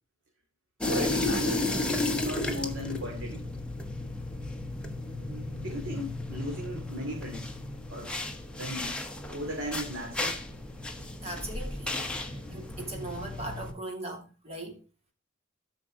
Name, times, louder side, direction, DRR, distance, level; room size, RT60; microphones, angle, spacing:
sound 1, 0.8-13.7, left 2 dB, 5° left, 1.1 m, -33 dB
voice 1, 0.9-1.7 2.1-3.5 5.1-7.5 7.9-8.1 8.5-9.0 9.3-10.4, equal, 65° right, 2.6 m, -37 dB
voice 2, 11.2-14.8, right 2 dB, 30° right, 2.8 m, -39 dB
13.0 x 6.2 x 3.7 m
head